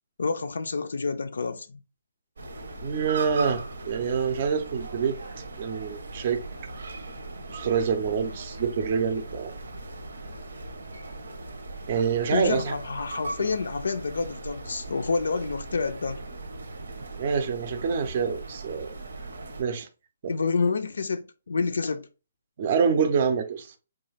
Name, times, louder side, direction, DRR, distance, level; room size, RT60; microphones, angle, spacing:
voice 1, 0.2-1.8 12.3-16.2 20.3-22.1, left 4 dB, 85° left, 0.4 m, -28 dB
sound 1, 2.4-19.6, right 2 dB, 80° right, 0.7 m, -39 dB
voice 2, 2.8-5.2 5.6-6.4 7.5-9.5 11.9-12.8 17.1-18.9 19.6-19.9 20.2-20.3 22.6-23.7, right 6 dB, 30° right, 0.5 m, -26 dB
3.8 x 2.3 x 3.2 m
hypercardioid pair, 175°, 0 cm